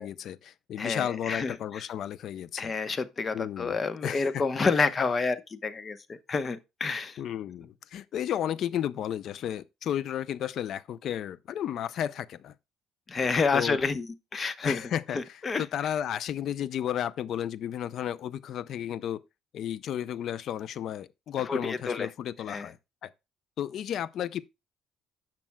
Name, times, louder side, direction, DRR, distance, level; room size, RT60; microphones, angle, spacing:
voice 1, 0.0-2.7 3.3-4.4 4.7-4.9 7.2-12.5 13.5-13.8 14.6-19.2 19.5-22.8 23.0-23.1 23.6-24.4, left 10 dB, 60° left, 0.5 m, -33 dB
voice 2, 0.8-1.6 2.6-7.2 13.1-14.1 14.3-14.8 15.1-15.6 21.5-22.1 22.5-22.7, left 4 dB, 30° left, 0.9 m, -29 dB
16.0 x 6.0 x 2.2 m
cardioid pair, 100°, 0 cm